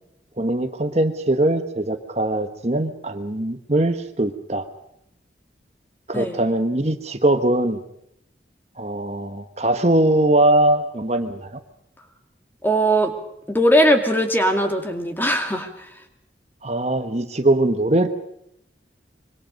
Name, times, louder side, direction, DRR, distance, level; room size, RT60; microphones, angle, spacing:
voice 1, 0.4-4.6 6.1-7.8 8.8-11.6 16.6-18.1, right 1 dB, 35° right, 7 dB, 1.2 m, -21 dB
voice 2, 12.6-13.1 13.5-15.7, equal, 10° left, 4 dB, 2.3 m, -19 dB
25.5 x 23.5 x 5.3 m, 0.78 s
head